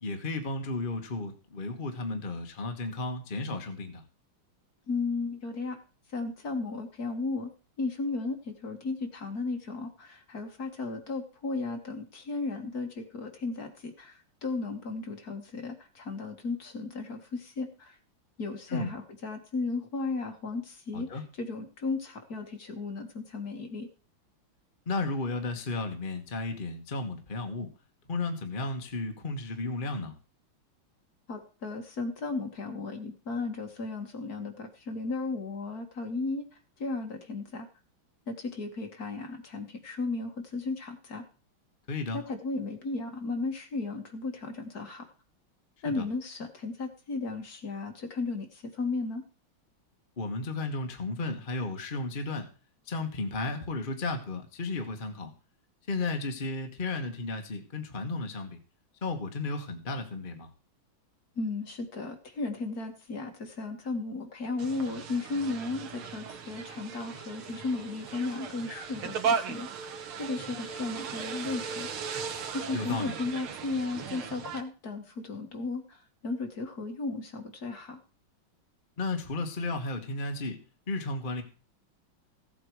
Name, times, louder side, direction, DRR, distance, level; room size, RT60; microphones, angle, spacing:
voice 1, 0.0-4.0 18.7-18.9 20.9-21.2 24.9-27.7 28.1-30.2 41.9-42.2 45.8-46.1 50.2-52.5 52.8-55.3 55.9-58.6 59.0-60.5 72.7-73.1 79.0-80.6 80.9-81.4, left 3 dB, 30° left, 5 dB, 1.3 m, -33 dB
voice 2, 4.9-5.8 6.1-7.5 7.8-18.0 18.4-21.1 21.4-23.9 31.3-36.4 36.8-37.7 38.3-41.2 42.1-45.1 45.8-49.2 61.4-71.9 72.5-78.0, left 3 dB, 50° left, 4 dB, 2.1 m, -35 dB
sound 1, 64.6-74.6, right 6 dB, 85° right, 2.1 m, -36 dB
15.5 x 8.2 x 4.7 m, 0.36 s
omnidirectional pair, 2.3 m